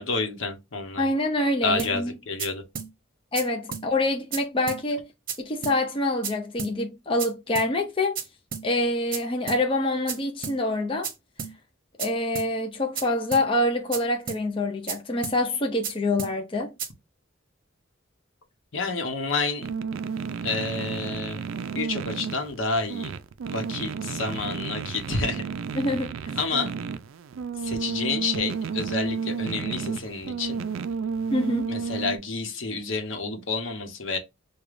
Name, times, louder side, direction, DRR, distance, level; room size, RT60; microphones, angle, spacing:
voice 1, 0.0-1.1 1.6-2.6 18.7-19.7 20.4-21.4 21.7-23.1 23.5-25.4 26.4-26.7 27.6-30.6 31.7-34.2, left 3 dB, 75° left, 1.0 m, -29 dB
voice 2, 1.0-2.2 3.3-5.1 5.4-8.2 8.6-11.1 12.0-16.7 25.7-26.4 31.3-31.8, left 1 dB, 25° left, 0.5 m, -26 dB
sound 1, 1.8-1.9 2.4-2.5 2.8-2.9 3.4-3.5 3.7-3.9 4.3-4.4 4.7-4.8 5.3-5.4 5.6-5.8 6.2-6.3 6.6-6.7 7.2-7.3 7.6-7.7 8.2-8.3 8.5-8.7 9.1-9.2 9.5-9.6 10.1-10.2 10.4-10.6 11.0-11.1 11.4-11.5 12.0-12.1 12.4-12.5 13.0-13.1 13.3-13.5 13.9-14.0 14.3-14.4 14.9-15.0 15.2-15.4 15.8-15.9 16.2-16.3 16.8-16.9, right 7 dB, 45° right, 0.8 m, -32 dB
sound 2, 19.6-32.2, right 5 dB, 85° right, 0.4 m, -32 dB
4.8 x 2.3 x 2.5 m
head